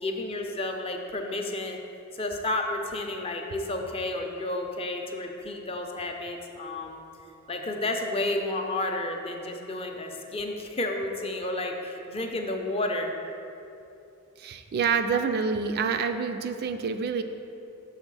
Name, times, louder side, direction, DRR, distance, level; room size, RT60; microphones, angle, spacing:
voice 1, 0.0-1.8 2.1-7.0 7.5-13.1, left 2 dB, 25° left, 3 dB, 0.5 m, -31 dB
voice 2, 14.4-17.2, right 5 dB, 45° right, 7 dB, 0.3 m, -27 dB
6.4 x 3.9 x 6.0 m, 2.8 s
head